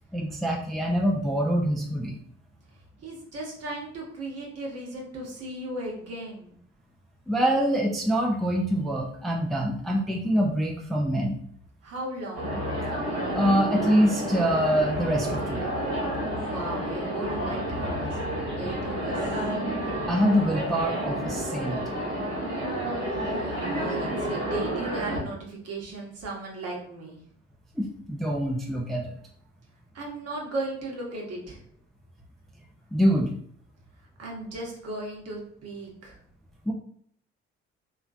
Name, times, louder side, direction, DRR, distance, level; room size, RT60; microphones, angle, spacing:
voice 1, 0.1-2.2 7.3-11.4 13.3-15.7 20.1-21.8 27.8-29.2 32.9-33.3 36.7-36.8, equal, ahead, -1 dB, 0.5 m, -25 dB
voice 2, 3.0-6.6 11.8-12.6 16.3-18.2 18.6-19.4 23.0-27.2 29.9-31.6 34.2-36.2, right 2 dB, 50° right, -2 dB, 1.0 m, -36 dB
sound 1, 12.3-25.2, right 1 dB, 70° right, 1.3 m, -30 dB
3.0 x 2.4 x 2.4 m, 0.63 s
hypercardioid pair, 50°, 33 cm